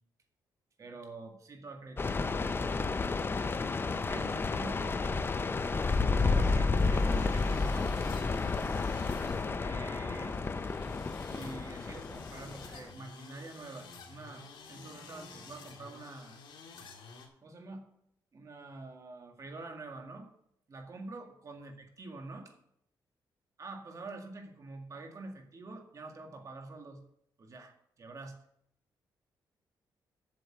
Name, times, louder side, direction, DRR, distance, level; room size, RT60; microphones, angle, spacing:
voice 1, 0.8-2.4 3.8-5.1 6.3-8.0 9.2-10.4 11.3-16.4 17.4-17.8 18.3-20.3 20.7-22.5 23.6-27.0 27.4-28.4, right 3 dB, 45° right, 3 dB, 2.0 m, -46 dB
sound 1, 2.0-12.9, left 4 dB, 30° left, 0.6 m, -31 dB
sound 2, 5.6-17.3, left 4 dB, 90° left, 2.0 m, -51 dB
7.8 x 6.9 x 7.8 m, 0.73 s
cardioid pair, 100°, 8 cm